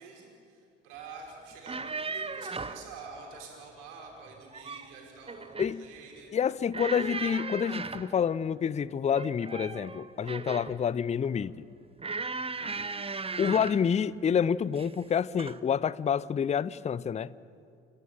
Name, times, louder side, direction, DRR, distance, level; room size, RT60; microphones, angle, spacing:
voice 1, 0.0-6.3, right 4 dB, 65° right, 5.2 m, -47 dB
sound 1, 1.5-2.9 4.3-4.9 5.3-5.8 6.7-8.1 9.1-10.8 12.0-13.9 14.7-15.0 15.4-15.6, right 4 dB, 15° right, 1.1 m, -37 dB
voice 2, 6.3-11.5 13.4-17.3, left 7 dB, 20° left, 0.6 m, -28 dB
29.0 x 15.5 x 8.9 m
figure-of-eight pair, 50°, 32 cm